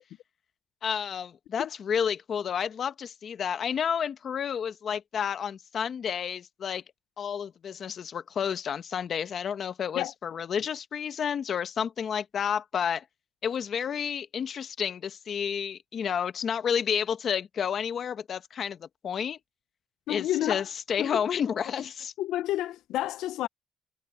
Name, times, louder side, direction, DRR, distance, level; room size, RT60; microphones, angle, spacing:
voice 1, 0.8-6.8 7.2-13.0 13.4-19.4 20.1-22.1, left 7 dB, 55° left, 0.9 m, -30 dB
voice 2, 20.1-20.7 21.0-21.2 22.2-23.5, left 14 dB, 90° left, 0.4 m, -30 dB
cardioid pair, 90°, 0 cm